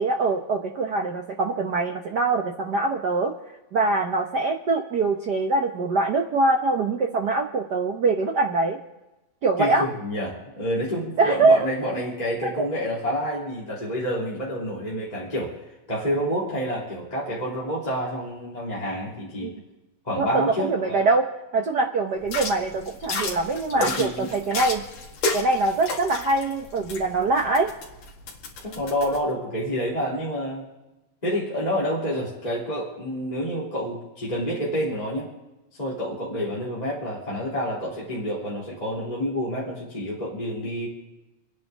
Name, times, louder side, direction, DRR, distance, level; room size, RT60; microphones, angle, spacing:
voice 1, 0.0-3.3 3.7-8.8 9.4-9.8 11.2-11.6 12.4-12.7 19.4-19.5 20.2-21.3 21.5-24.8 25.3-27.7, right 3 dB, 75° right, 3 dB, 0.9 m, -23 dB
voice 2, 9.6-15.5 15.9-19.5 20.0-21.0 23.7-24.3 28.6-30.7 31.2-35.3 35.8-40.9, equal, 15° left, -7 dB, 3.1 m, -28 dB
sound 1, 22.2-29.2, left 3 dB, 65° left, 3.2 m, -32 dB
30.0 x 10.5 x 3.6 m, 1.0 s
omnidirectional pair, 3.4 m